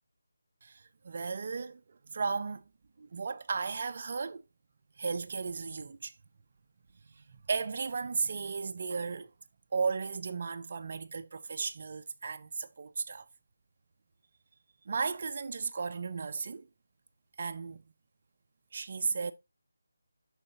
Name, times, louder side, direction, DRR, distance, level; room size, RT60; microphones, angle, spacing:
voice 1, 0.6-2.6 3.0-4.4 5.0-6.1 7.0-9.3 9.7-13.3 14.9-16.7 17.4-17.8 18.7-19.3, right 5 dB, 30° right, 0.4 m, -35 dB
10.5 x 3.9 x 2.7 m
figure-of-eight pair, 180°, 0 cm